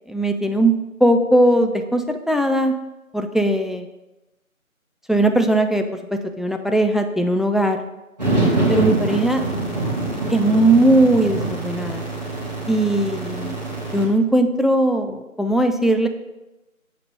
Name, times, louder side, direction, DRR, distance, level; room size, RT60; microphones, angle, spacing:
voice 1, 0.1-2.7 3.1-3.9 5.1-5.9 6.1-7.8 8.7-9.4 10.3-12.0 12.7-13.6 13.9-16.1, right 1 dB, ahead, 6 dB, 0.3 m, -19 dB
sound 1, 8.2-14.1, right 2 dB, 30° right, 1.5 m, -24 dB
7.7 x 3.2 x 5.4 m, 1.0 s
figure-of-eight pair, 175°, 43 cm